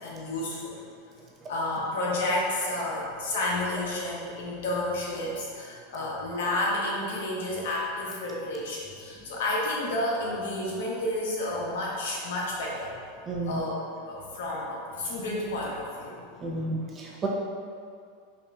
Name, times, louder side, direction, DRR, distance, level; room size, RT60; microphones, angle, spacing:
voice 1, 0.0-0.7 1.5-12.9 13.5-16.2, left 1 dB, 80° left, -4 dB, 0.9 m, -31 dB
voice 2, 13.3-13.7 16.4-17.3, right 2 dB, 30° right, -3 dB, 0.6 m, -32 dB
5.3 x 2.5 x 2.2 m, 2.2 s
supercardioid pair, 125°, 0 cm